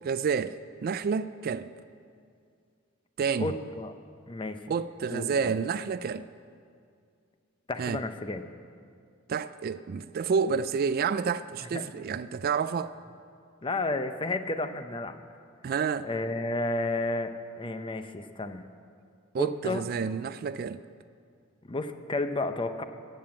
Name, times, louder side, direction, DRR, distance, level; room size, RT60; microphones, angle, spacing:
voice 1, 0.0-1.7 3.2-3.5 4.7-6.3 7.8-8.0 9.3-12.9 15.6-16.1 19.3-20.8, right 6 dB, 45° right, 0.3 m, -29 dB
voice 2, 3.4-3.9 4.3-4.6 5.1-5.5 7.7-8.5 11.7-11.8 13.6-15.2 16.0-18.7 19.4-19.8 21.7-22.8, left 2 dB, 25° left, 0.6 m, -32 dB
14.5 x 7.7 x 8.7 m
head